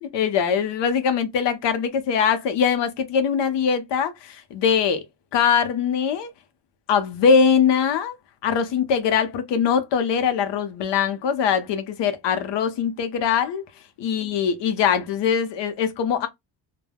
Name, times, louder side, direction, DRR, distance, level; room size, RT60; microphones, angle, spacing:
voice 1, 0.0-5.0 5.3-6.3 6.9-8.2 8.4-13.6 14.0-16.3, left 7 dB, 85° left, 0.7 m, -22 dB
2.2 x 2.1 x 3.3 m
cardioid pair, 105°, 41 cm